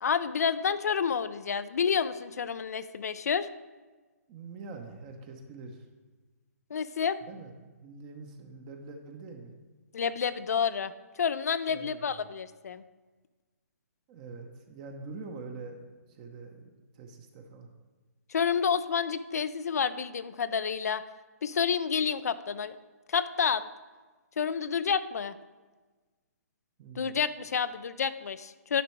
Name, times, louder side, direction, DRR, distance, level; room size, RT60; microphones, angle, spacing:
voice 1, 0.0-3.5 6.7-7.2 9.9-10.9 11.2-12.8 18.3-21.0 21.4-22.7 23.1-23.6 24.4-25.3 27.0-28.8, left 6 dB, 70° left, 14 dB, 0.5 m, -29 dB
voice 2, 4.3-5.9 7.2-9.5 11.7-12.3 14.1-17.7 26.8-27.2, right 4 dB, 30° right, 4 dB, 0.9 m, -45 dB
10.0 x 6.0 x 4.5 m, 1.3 s
hypercardioid pair, 140°, 9 cm